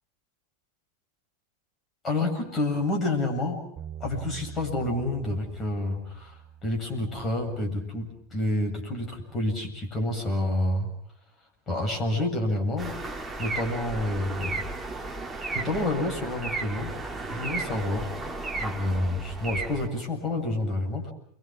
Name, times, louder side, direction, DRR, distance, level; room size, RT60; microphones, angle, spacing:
voice 1, 2.0-3.6 4.0-10.9 11.4-13.0 13.4-14.7 15.5-17.0 17.2-18.1 18.5-21.1, left 1 dB, 20° left, 3 dB, 7.9 m, -29 dB
Bass guitar, 3.8-10.0, right 9 dB, 25° right, 7.2 m, -46 dB
sound 1, 12.8-19.9, right 3 dB, 10° right, 2.4 m, -34 dB
29.5 x 24.0 x 6.3 m, 0.68 s
figure-of-eight pair, 90°, 0 cm